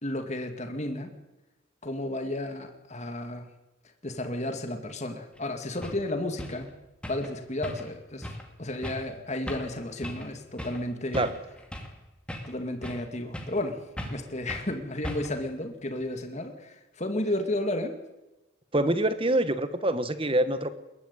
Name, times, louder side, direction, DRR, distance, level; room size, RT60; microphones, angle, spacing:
voice 1, 0.0-1.1 1.8-3.5 4.0-6.7 7.1-8.3 8.6-11.3 12.5-13.8 14.1-18.0, left 1 dB, 35° left, 6 dB, 2.2 m, -32 dB
sound 1, 5.4-5.5 5.8-6.0 6.4-6.6 7.0-7.3 7.6-8.0 8.2-8.5 8.8-9.1 9.5-9.7 10.0-10.3 10.6-10.8 11.1-12.0 12.3-13.1 13.3-13.6 14.0-14.2 14.5-14.7 15.0-15.4, equal, 5° left, 2.4 m, -38 dB
voice 2, 18.7-20.7, right 1 dB, 25° right, 12 dB, 1.3 m, -25 dB
21.5 x 12.5 x 9.7 m, 1.0 s
head